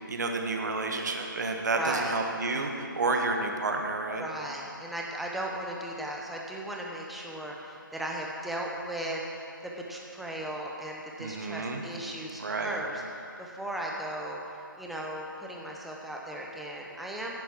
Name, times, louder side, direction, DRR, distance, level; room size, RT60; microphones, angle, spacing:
voice 1, 0.1-4.2 11.2-11.8 12.4-12.8, right 3 dB, 55° right, 3 dB, 1.5 m, -30 dB
voice 2, 1.7-2.2 4.2-14.4 14.8-17.3, right 1 dB, ahead, -2 dB, 0.6 m, -36 dB
10.5 x 9.2 x 6.0 m, 2.6 s
figure-of-eight pair, 155°, 11 cm